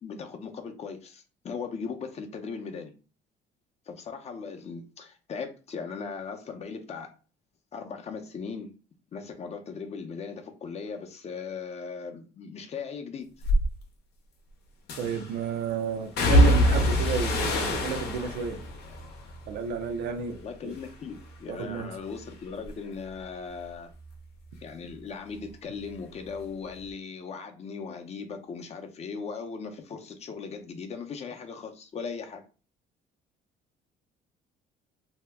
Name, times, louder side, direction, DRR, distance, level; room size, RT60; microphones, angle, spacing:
voice 1, 0.0-2.9 3.9-7.1 7.7-8.7 9.1-13.3 20.4-23.9 24.6-32.4, left 5 dB, 40° left, 0.6 m, -38 dB
sound 1, 13.4-13.7 14.9-15.4 16.2-20.4 20.7-21.3 21.7-25.0 25.3-26.4 26.7-26.8, left 1 dB, 75° left, 0.8 m, -26 dB
voice 2, 15.0-18.6 19.5-20.8 21.5-21.9, right 7 dB, 85° right, 0.5 m, -32 dB
2.7 x 2.2 x 3.4 m
cardioid pair, 110°, 17 cm